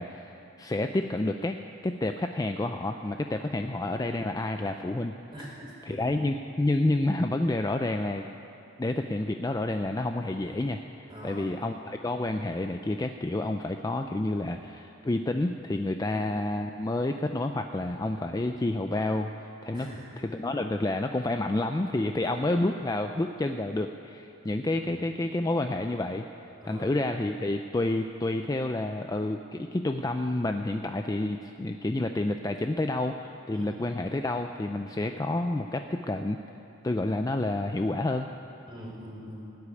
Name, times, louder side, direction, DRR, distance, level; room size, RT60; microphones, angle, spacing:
voice 1, 0.0-1.6 1.8-5.1 5.9-8.3 8.8-19.3 19.6-19.9 20.2-26.2 26.7-36.4 36.8-38.3, left 2 dB, 15° left, 6 dB, 0.3 m, -29 dB
voice 2, 5.3-6.2 11.1-11.5 16.0-16.3 19.7-20.1 22.2-22.5 24.7-25.0 26.6-26.9 33.5-33.8 38.7-39.6, equal, 20° right, -4 dB, 3.8 m, -43 dB
17.0 x 8.4 x 9.7 m, 2.8 s
head